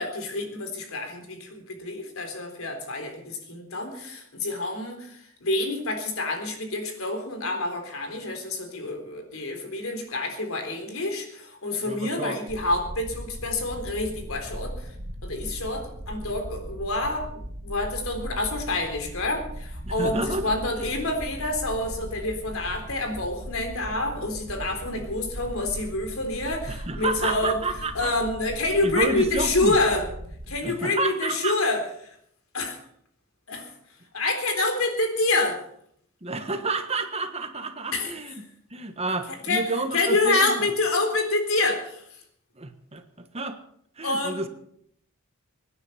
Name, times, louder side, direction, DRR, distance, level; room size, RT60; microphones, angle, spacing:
voice 1, 0.0-14.9 15.2-17.3 17.6-27.6 27.9-30.1 30.5-32.1 32.5-32.8 33.5-33.7 34.1-35.6 37.9-38.1 39.4-39.7 39.9-42.0 44.0-44.4, left 2 dB, 70° left, 4 dB, 3.8 m, -27 dB
voice 2, 11.8-12.4 19.8-20.9 26.7-28.1 28.8-29.8 30.6-31.5 36.2-38.3 38.7-40.6 42.6-43.6 44.0-44.5, right 3 dB, 30° right, 8 dB, 1.3 m, -30 dB
sound 1, 12.5-30.6, equal, 70° right, 2.3 m, -38 dB
24.5 x 9.9 x 5.6 m, 0.69 s
head